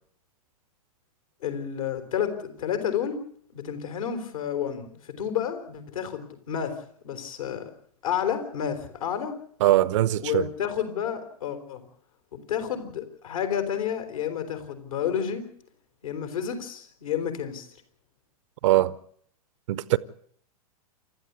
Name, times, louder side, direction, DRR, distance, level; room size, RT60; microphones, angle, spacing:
voice 1, 1.4-3.2 3.5-6.7 7.0-7.7 8.0-9.4 10.2-11.8 12.5-15.4 16.0-17.7, left 8 dB, 65° left, 4.1 m, -30 dB
voice 2, 9.6-10.5 18.6-18.9 19.7-20.0, right 15 dB, 50° right, 0.8 m, -21 dB
28.5 x 13.0 x 8.2 m
figure-of-eight pair, 100°, 19 cm